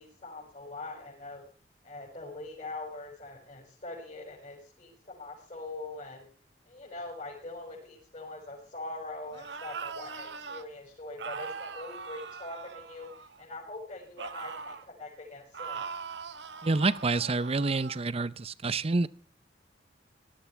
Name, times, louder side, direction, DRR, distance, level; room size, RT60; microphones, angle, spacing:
voice 1, 0.0-1.4 1.8-6.3 6.7-15.9, left 2 dB, 45° left, -4 dB, 5.8 m, -43 dB
sound 1, 9.3-10.6 11.2-13.5 14.2-14.9 15.5-18.0, right 5 dB, 70° right, 1.2 m, -41 dB
voice 2, 16.6-19.1, right 3 dB, 35° right, 16 dB, 0.6 m, -28 dB
19.0 x 12.5 x 4.6 m, 0.42 s
head